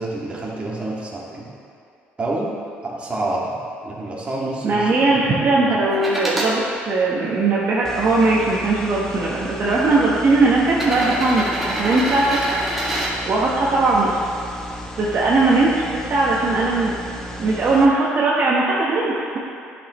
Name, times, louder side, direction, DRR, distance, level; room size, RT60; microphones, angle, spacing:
voice 1, 0.0-1.5 2.2-2.5 2.8-3.6 3.8-5.2 5.5-5.7, right 2 dB, 25° right, -5 dB, 1.8 m, -28 dB
voice 2, 4.6-12.4 13.3-14.2 15.0-17.0 17.4-19.4, right 3 dB, 50° right, -6 dB, 1.1 m, -19 dB
sound 1, 5.9-6.5 7.3-8.3 9.3-9.4 10.7-13.1 15.0-15.1, right 1 dB, 5° right, 1.9 m, -26 dB
sound 2, 7.8-17.9, equal, 10° left, 0.9 m, -35 dB
10.0 x 6.2 x 3.0 m, 2.4 s
cardioid pair, 90°, 4 cm